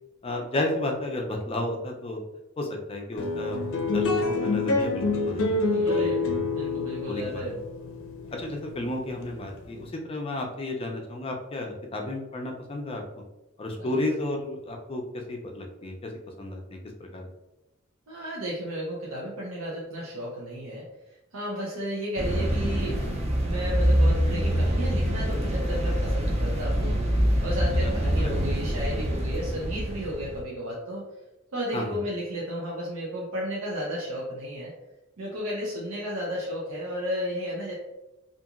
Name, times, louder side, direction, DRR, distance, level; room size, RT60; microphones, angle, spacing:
voice 1, 0.2-2.2 2.6-3.7 3.9-6.5 7.1-7.6 8.3-13.2 13.6-15.0 15.3-16.1 16.4-17.3 27.8-27.9 28.2-28.5 31.7-32.0, left 2 dB, 30° left, 2 dB, 0.4 m, -33 dB
sound 1, 3.2-9.8, left 3 dB, 90° left, 0.5 m, -27 dB
voice 2, 5.5-7.5 13.8-14.0 18.1-23.0 23.4-27.0 27.4-31.1 31.5-34.7 35.2-37.7, equal, 90° right, -5 dB, 0.6 m, -33 dB
sound 2, 22.2-30.4, equal, 30° right, 0.4 m, -25 dB
2.8 x 2.5 x 2.4 m, 0.96 s
head